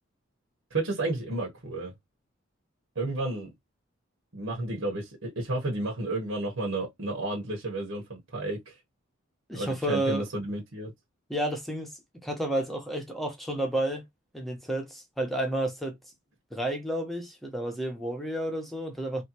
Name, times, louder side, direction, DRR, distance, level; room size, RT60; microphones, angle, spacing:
voice 1, 0.7-1.9 2.9-3.5 4.3-8.7 9.5-10.9, right 2 dB, 80° right, 1.2 m, -32 dB
voice 2, 9.5-10.3 11.3-11.9 12.2-14.0 14.3-15.9 16.5-19.2, right 1 dB, ahead, 1.0 m, -31 dB
3.2 x 2.8 x 2.9 m
head